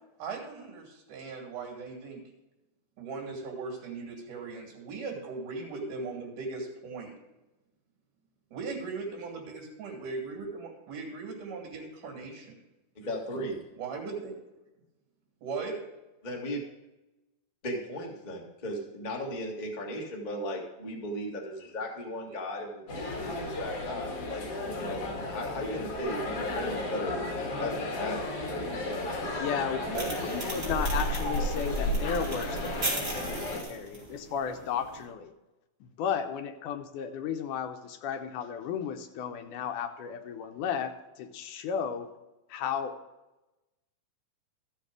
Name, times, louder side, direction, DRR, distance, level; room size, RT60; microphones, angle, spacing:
voice 1, 0.2-2.2 3.0-7.1 8.5-12.5 13.7-14.4 15.4-15.8 22.2-22.4 29.9-30.1, right 4 dB, 65° right, 0 dB, 4.0 m, -38 dB
voice 2, 12.9-13.6 16.2-16.7 17.6-24.4 24.7-28.2 28.5-29.0, left 1 dB, 30° left, -1 dB, 0.8 m, -36 dB
sound 1, 22.9-33.6, left 1 dB, 45° left, 2.7 m, -33 dB
voice 3, 29.4-35.3 35.8-42.1 42.5-43.0, left 7 dB, 75° left, 6 dB, 2.2 m, -34 dB
sound 2, 29.9-35.0, right 2 dB, 25° right, 3.1 m, -38 dB
13.5 x 6.7 x 4.9 m, 1.0 s
omnidirectional pair, 4.0 m